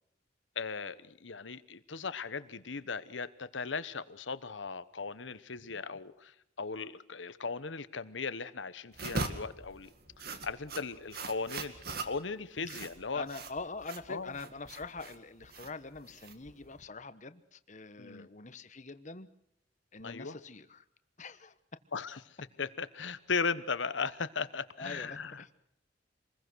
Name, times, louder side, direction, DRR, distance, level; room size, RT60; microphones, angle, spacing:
voice 1, 0.6-9.9 10.4-13.2 14.1-14.3 18.0-18.3 20.0-20.4 21.9-25.4, left 5 dB, 85° left, 1.1 m, -37 dB
sound 1, 8.9-16.8, right 3 dB, 55° right, 2.1 m, -41 dB
voice 2, 13.1-19.3 19.9-20.8 21.2-21.5 24.8-25.5, left 3 dB, 40° left, 1.2 m, -44 dB
26.5 x 21.0 x 6.4 m
head